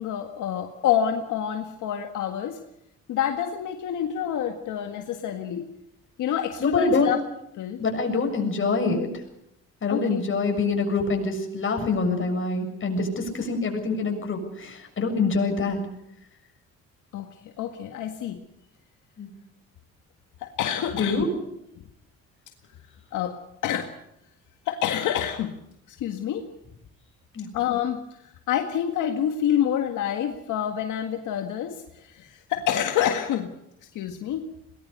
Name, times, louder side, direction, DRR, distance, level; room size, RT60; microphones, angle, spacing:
voice 1, 0.0-2.6 3.1-5.7 6.2-7.2 7.6-7.8 9.9-10.2 17.1-18.4 20.4-21.3 23.1-23.4 23.6-23.9 24.7-25.5 25.9-26.5 27.5-28.0 28.5-33.5 33.9-34.5, left 10 dB, 85° left, 5 dB, 1.9 m, -27 dB
voice 2, 6.6-7.1 7.8-9.1 9.8-15.8 19.2-19.3 21.0-21.3 27.3-27.5, left 4 dB, 40° left, 4 dB, 7.1 m, -25 dB
22.5 x 20.0 x 6.7 m, 0.80 s
cardioid pair, 90°, 30 cm